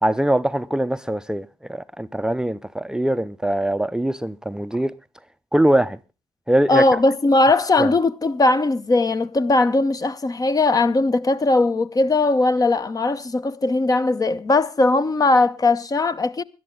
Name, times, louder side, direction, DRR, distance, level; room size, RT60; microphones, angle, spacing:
voice 1, 0.0-4.9 5.5-6.0 6.5-6.8 7.8-7.9, right 1 dB, 5° right, 0.6 m, -22 dB
voice 2, 6.7-16.4, left 2 dB, 30° left, 0.9 m, -19 dB
21.0 x 11.0 x 3.8 m
figure-of-eight pair, 45°, 12 cm